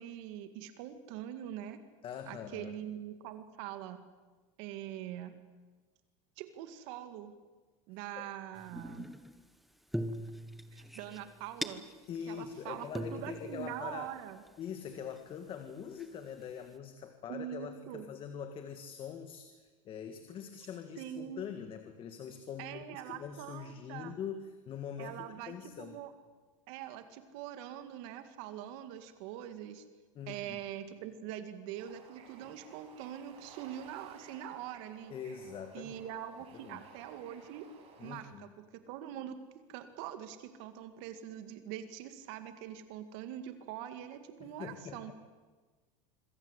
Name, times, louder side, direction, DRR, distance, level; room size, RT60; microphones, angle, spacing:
voice 1, 0.0-1.8 2.3-4.0 4.6-5.3 6.4-7.3 7.9-9.1 10.7-11.8 12.3-14.4 17.3-18.1 21.0-21.4 22.6-24.1 25.0-26.1 26.7-29.8 30.3-35.1 35.7-37.7 38.0-39.4 39.7-45.1, right 11 dB, 60° right, 9 dB, 2.1 m, -43 dB
voice 2, 2.0-2.7 8.2-8.3 12.1-14.1 14.6-26.0 30.2-30.6 35.1-36.0 36.5-36.8 38.0-38.5 44.4-45.1, left 7 dB, 30° left, 7 dB, 1.8 m, -43 dB
scissors shaver and piler soundfork, 8.6-9.5 9.9-12.2 12.5-12.6 12.9-14.5 15.2-15.3 16.0-16.4, equal, ahead, 1.2 m, -41 dB
Bird / Ocean, 31.8-38.2, right 5 dB, 35° right, 6.3 m, -56 dB
26.0 x 22.5 x 8.2 m, 1.3 s
supercardioid pair, 150°, 17 cm